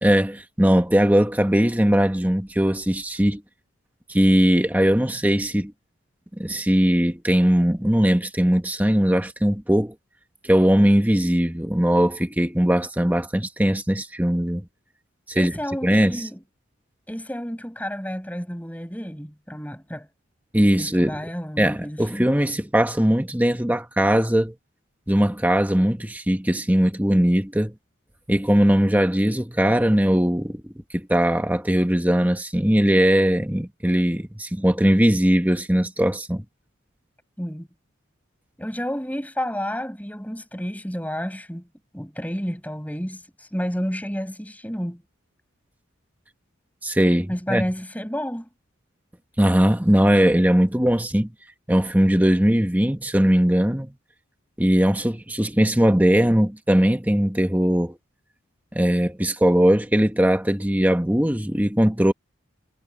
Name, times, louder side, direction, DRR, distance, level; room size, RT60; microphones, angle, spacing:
voice 1, 0.0-3.4 4.1-5.7 6.4-9.9 10.4-14.7 15.3-15.5 15.8-16.2 20.5-21.2 21.6-24.5 25.1-27.7 28.3-36.4 46.8-47.6 49.4-51.3 51.7-53.9 54.6-58.0 58.7-62.1, equal, 10° right, 1.3 m, -20 dB
voice 2, 15.4-16.4 17.1-20.1 20.8-22.3 37.4-37.7 38.6-41.7 41.9-45.0 47.3-48.5, equal, 10° left, 5.5 m, -30 dB
head